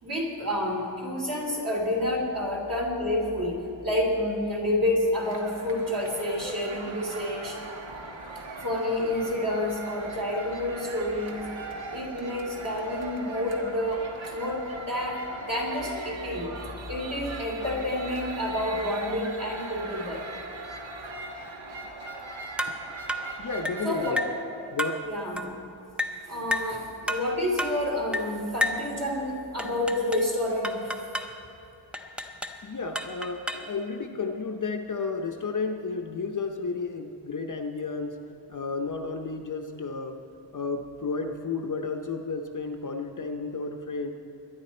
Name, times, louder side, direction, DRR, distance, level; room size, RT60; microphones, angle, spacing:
voice 1, 0.0-7.6 8.6-11.5 11.9-16.5 16.9-20.2 23.8-24.2 25.0-25.5 26.2-31.1, left 1 dB, 45° right, -2 dB, 2.9 m, -29 dB
sound 1, 5.2-24.1, right 2 dB, 75° right, 1.4 m, -40 dB
sound 2, 22.6-22.8 23.1-23.3 23.6-23.8 24.2-24.4 24.8-25.0 25.4-25.5 26.0-26.2 26.5-26.7 27.1-27.3 27.6-27.8 28.1-28.3 28.6-28.9 29.6-30.3 30.6-31.3 31.9-32.6 32.9-33.7, left 1 dB, 5° right, 0.5 m, -31 dB
voice 2, 23.4-24.2 24.7-25.0 32.6-38.2 38.5-40.2 40.5-44.1, left 4 dB, 40° left, 4 dB, 0.7 m, -32 dB
22.0 x 10.5 x 4.3 m, 2.9 s
wide cardioid pair, 180°, 46 cm